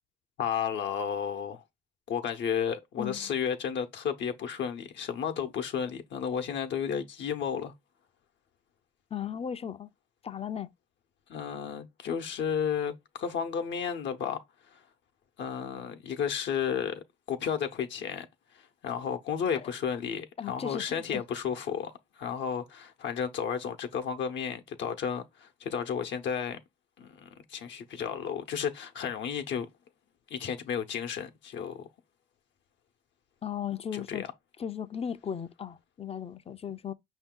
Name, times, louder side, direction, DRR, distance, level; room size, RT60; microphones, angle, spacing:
voice 1, 0.4-1.6 2.1-7.7 11.3-14.4 14.7-14.8 15.4-18.3 18.5-26.6 27.0-29.7 30.3-31.9 33.9-34.3, left 7 dB, 65° left, 0.7 m, -33 dB
voice 2, 3.0-3.3 9.1-9.9 10.2-10.7 20.4-21.2 33.4-34.2 34.6-36.9, left 8 dB, 30° left, 0.4 m, -36 dB
5.4 x 2.7 x 3.7 m
cardioid pair, 90°, 20 cm